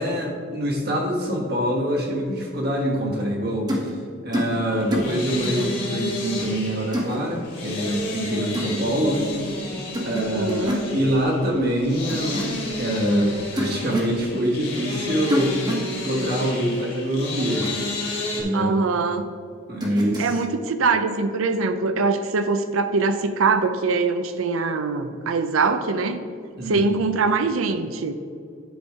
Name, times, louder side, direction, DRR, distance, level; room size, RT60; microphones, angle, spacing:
voice 1, 0.0-3.9 4.2-9.3 10.0-15.6 16.0-17.7 18.3-18.8 19.7-20.4 26.6-26.8, equal, 50° right, 0 dB, 1.4 m, -25 dB
sound 1, 3.7-3.9 4.3-4.6 4.9-5.1 5.4-5.7 6.9-7.2 8.5-8.8 9.9-10.2 10.5-10.9 12.1-12.5 13.6-14.1 15.3-15.9 17.5-17.7 19.8-20.3, equal, 20° right, 1.1 m, -27 dB
sound 2, 4.7-18.4, left 2 dB, 50° left, 2.0 m, -31 dB
voice 2, 10.3-10.8 18.5-19.3 20.2-26.2 26.7-28.2, right 4 dB, 75° right, 9 dB, 0.5 m, -23 dB
10.0 x 4.4 x 4.8 m, 2.2 s
head